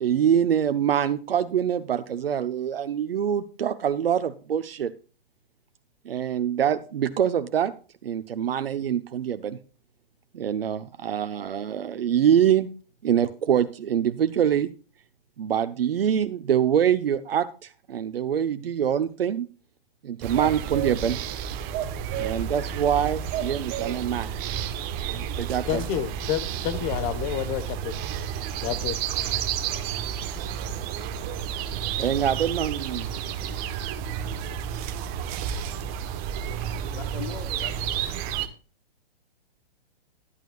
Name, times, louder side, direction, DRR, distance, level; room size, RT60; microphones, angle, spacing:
voice 1, 0.0-4.9 6.0-7.7 8.0-9.6 10.3-12.7 13.0-14.7 15.4-19.5 20.0-21.2 22.2-24.3 25.1-25.8 32.0-33.1, right 9 dB, 75° right, 0.9 m, -25 dB
sound 1, 20.2-38.5, right 9 dB, 30° right, 1.2 m, -31 dB
voice 2, 25.7-28.0 28.6-29.0, left 10 dB, 35° left, 1.3 m, -29 dB
voice 3, 36.9-38.5, left 9 dB, 60° left, 1.5 m, -41 dB
12.0 x 11.5 x 2.4 m
hypercardioid pair, 130°, 29 cm